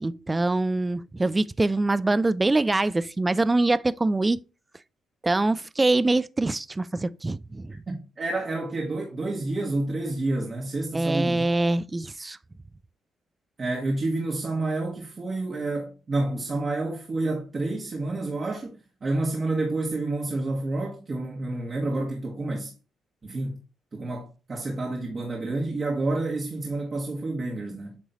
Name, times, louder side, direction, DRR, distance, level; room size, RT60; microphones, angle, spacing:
voice 1, 0.0-4.4 5.2-7.7 10.9-12.4, right 2 dB, 20° right, 0.4 m, -24 dB
voice 2, 7.9-11.4 13.6-18.7 19.0-22.7 23.2-23.6 23.9-28.0, right 2 dB, 35° right, 1.5 m, -29 dB
8.5 x 3.2 x 3.9 m
cardioid pair, 90°, 0 cm